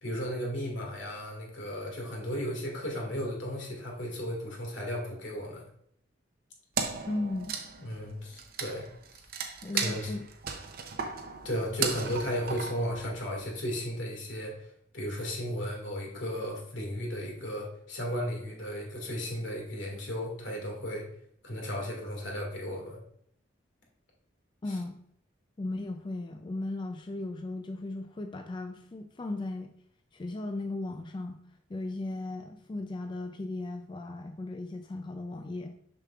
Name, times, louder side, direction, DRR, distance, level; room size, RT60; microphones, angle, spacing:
voice 1, 0.0-5.6 7.8-8.9 9.7-10.1 11.4-21.1 21.4-23.0 24.7-24.8, equal, 80° left, 0 dB, 2.0 m, -35 dB
Wood, 6.8-13.5, right 6 dB, 50° right, 0.6 m, -36 dB
voice 2, 7.1-7.6 9.6-10.3 24.6-25.0 25.6-29.7 30.1-31.4 31.7-35.7, left 2 dB, 25° left, 5 dB, 0.3 m, -36 dB
6.6 x 5.9 x 2.4 m, 0.68 s
head